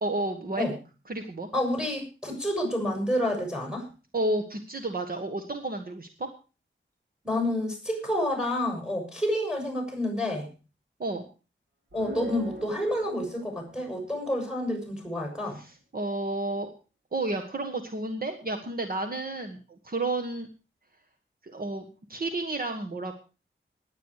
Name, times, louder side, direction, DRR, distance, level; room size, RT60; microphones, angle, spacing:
voice 1, 0.0-0.7 1.1-1.5 4.1-6.3 11.0-11.2 15.5-16.7 17.1-19.6 19.8-20.5 21.4-23.1, right 2 dB, 45° right, 6 dB, 1.5 m, -31 dB
voice 2, 1.5-3.9 7.2-10.5 11.9-15.6, left 1 dB, 5° right, 4 dB, 7.1 m, -29 dB
sound 1, 11.9-14.6, right 1 dB, 65° right, 4.6 m, -42 dB
19.5 x 9.2 x 4.8 m, 0.34 s
wide cardioid pair, 125°, 20 cm